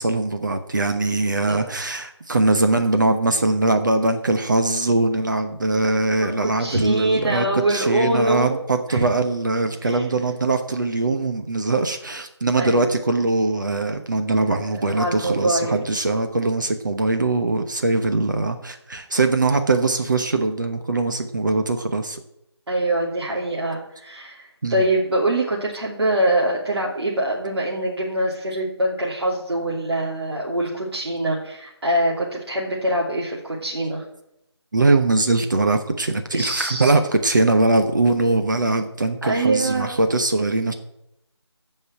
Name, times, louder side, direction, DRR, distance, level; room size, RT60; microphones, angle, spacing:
voice 1, 0.0-22.2 24.6-24.8 34.7-40.7, right 2 dB, 45° right, 6 dB, 1.0 m, -21 dB
voice 2, 6.4-8.6 8.9-9.0 9.8-10.0 12.6-12.8 14.5-14.6 14.9-15.8 22.7-34.0 36.3-36.9 39.2-40.0, right 1 dB, 65° right, -4 dB, 2.8 m, -24 dB
14.5 x 5.5 x 7.8 m, 0.83 s
figure-of-eight pair, 170°, 15 cm